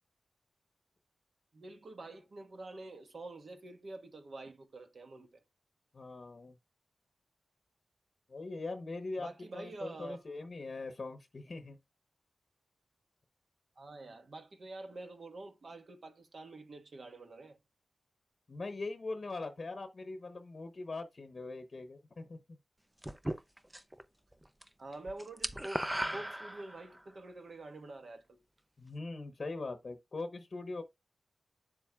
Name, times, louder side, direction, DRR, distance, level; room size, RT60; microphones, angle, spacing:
voice 1, 1.5-5.4 9.2-10.2 13.8-17.6 24.8-25.8 26.1-28.4, right 2 dB, 60° right, 1.3 m, -47 dB
voice 2, 5.9-6.5 8.3-11.8 18.5-22.6 23.3-23.4 28.8-30.8, left 3 dB, 45° left, 0.9 m, -41 dB
sound 1, 23.0-24.0 24.3-24.7 24.9-27.0, right 1 dB, 10° right, 0.5 m, -37 dB
9.1 x 7.4 x 2.3 m
wide cardioid pair, 115°, 0 cm